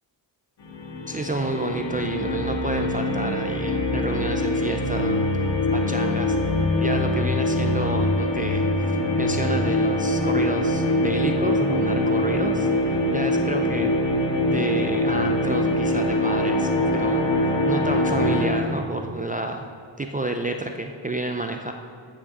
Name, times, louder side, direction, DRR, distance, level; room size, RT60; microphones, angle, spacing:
sound 1, 0.6-18.5, left 1 dB, 70° left, 1.8 m, -23 dB
voice 1, 1.1-5.3 5.7-6.4 6.8-8.7 9.2-13.9 14.5-19.7 20.0-21.7, right 2 dB, 20° right, 4 dB, 0.4 m, -30 dB
13.5 x 6.3 x 6.6 m, 2.2 s
wide cardioid pair, 175°, 45 cm